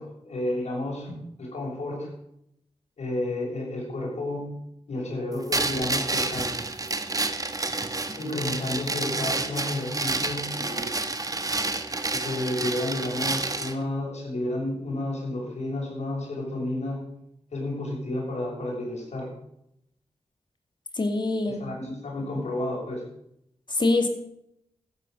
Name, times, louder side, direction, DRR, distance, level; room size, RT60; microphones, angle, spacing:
voice 1, 0.0-2.1 3.0-4.5 4.9-6.6 8.0-10.9 12.1-17.0 17.5-19.3 21.5-23.0, left 1 dB, 80° left, -2 dB, 6.6 m, -31 dB
sound 1, 5.5-13.8, right 2 dB, 30° right, 1.3 m, -29 dB
voice 2, 21.0-21.6 23.7-24.1, left 2 dB, 45° left, 5 dB, 2.4 m, -24 dB
14.0 x 9.9 x 6.6 m, 0.77 s
wide cardioid pair, 80°, 11 cm